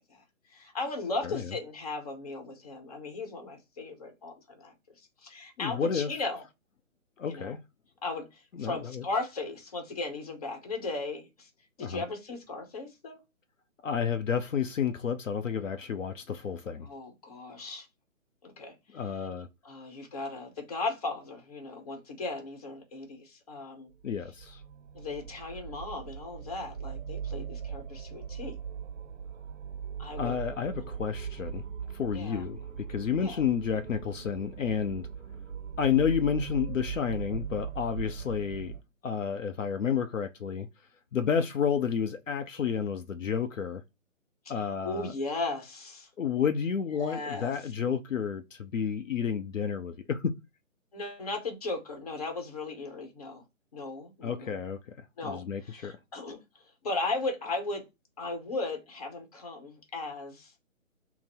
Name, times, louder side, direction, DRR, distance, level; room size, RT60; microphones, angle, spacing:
voice 1, 0.5-6.4 7.2-7.6 8.0-11.5 11.8-13.2 16.8-17.9 18.4-19.3 19.6-23.9 24.9-28.6 30.0-30.3 30.7-30.8 32.1-32.4 33.2-33.4 44.4-46.1 47.0-47.5 50.9-53.4 53.7-54.6 55.2-57.8 58.2-60.5, left 3 dB, 25° left, 1.0 m, -37 dB
voice 2, 5.6-6.1 7.2-7.6 8.5-9.0 11.8-12.0 13.8-16.9 18.9-19.5 24.0-24.6 30.2-31.6 31.9-35.1 35.8-38.8 39.0-40.7 41.1-43.8 44.5-45.1 46.2-50.3 54.2-56.0, left 7 dB, 65° left, 0.6 m, -30 dB
sound 1, 24.0-38.8, right 7 dB, 65° right, 0.5 m, -40 dB
3.7 x 2.1 x 4.3 m
hypercardioid pair, 160°, 42 cm